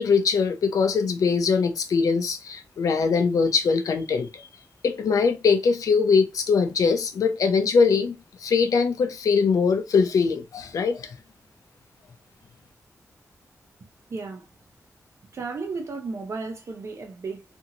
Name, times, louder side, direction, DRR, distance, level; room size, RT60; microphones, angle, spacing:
voice 1, 0.0-4.5 4.8-11.2, left 5 dB, 85° left, 0.5 m, -22 dB
voice 2, 14.1-14.5 15.3-17.4, right 4 dB, 55° right, 0.7 m, -34 dB
2.9 x 2.6 x 2.5 m
wide cardioid pair, 165°, 6 cm